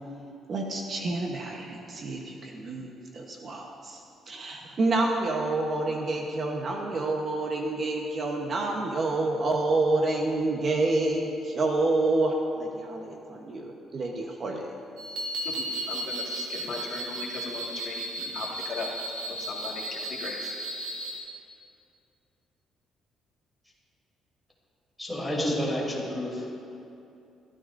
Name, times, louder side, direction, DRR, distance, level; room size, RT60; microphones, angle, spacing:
voice 1, 0.5-4.0 4.3-14.7, right 2 dB, 35° right, 1 dB, 1.0 m, -28 dB
sound 1, 15.0-21.2, right 1 dB, 75° right, 2.8 m, -34 dB
voice 2, 15.4-18.9 19.5-20.4, left 4 dB, 50° left, -2 dB, 1.8 m, -38 dB
voice 3, 25.0-26.5, equal, ahead, -5 dB, 3.0 m, -29 dB
23.0 x 13.0 x 2.6 m, 2.7 s
cardioid pair, 165°, 0 cm